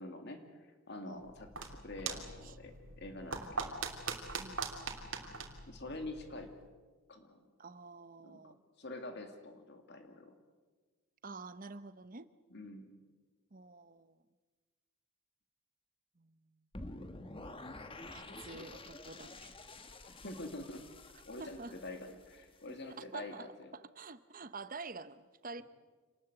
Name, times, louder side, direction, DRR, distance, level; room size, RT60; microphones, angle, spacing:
voice 1, 0.0-3.8 5.7-6.5 7.1-7.4 8.2-8.4 8.8-10.3 12.5-12.9 18.2-18.6 20.0-20.8 21.3-23.7, left 2 dB, 50° left, 6 dB, 2.5 m, -46 dB
sound 1, 1.2-6.6, right 4 dB, 60° right, 3.1 m, -42 dB
voice 2, 4.4-4.9 7.6-8.6 11.2-12.3 13.5-14.1 16.2-16.3 18.1-19.5 21.4-21.7 22.7-23.5 23.7-25.6, right 3 dB, 40° right, 13 dB, 0.9 m, -48 dB
sound 2, 16.7-22.8, left 2 dB, 25° left, 1.4 m, -49 dB
27.5 x 19.5 x 8.0 m, 1.4 s
head